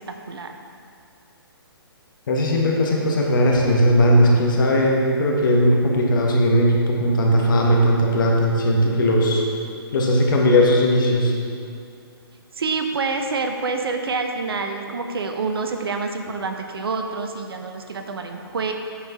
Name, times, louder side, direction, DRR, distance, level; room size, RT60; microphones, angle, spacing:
voice 1, 0.1-0.5 12.6-18.7, right 4 dB, 70° right, 5 dB, 0.8 m, -27 dB
voice 2, 2.3-9.4 9.9-11.3, equal, 55° left, -1 dB, 1.4 m, -18 dB
8.7 x 4.6 x 5.5 m, 2.4 s
figure-of-eight pair, 135°, 13 cm